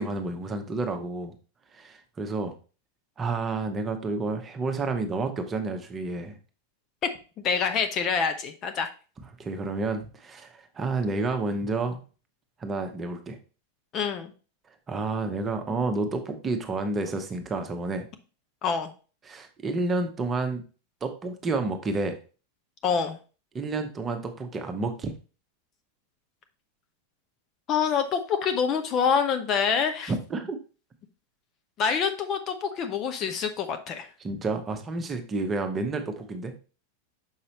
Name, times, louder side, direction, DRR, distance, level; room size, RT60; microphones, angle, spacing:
voice 1, 0.0-1.3 1.7-2.5 3.2-6.4 9.4-12.0 12.6-13.4 14.9-18.1 19.2-20.6 21.0-22.2 23.5-25.1 30.1-30.6 34.2-36.5, right 3 dB, 20° right, 5 dB, 1.0 m, -30 dB
voice 2, 7.4-8.9 13.9-14.3 18.6-18.9 22.8-23.2 27.7-30.1 31.8-34.1, left 6 dB, 35° left, 7 dB, 0.7 m, -26 dB
6.5 x 5.4 x 2.9 m, 0.35 s
figure-of-eight pair, 90°, 0 cm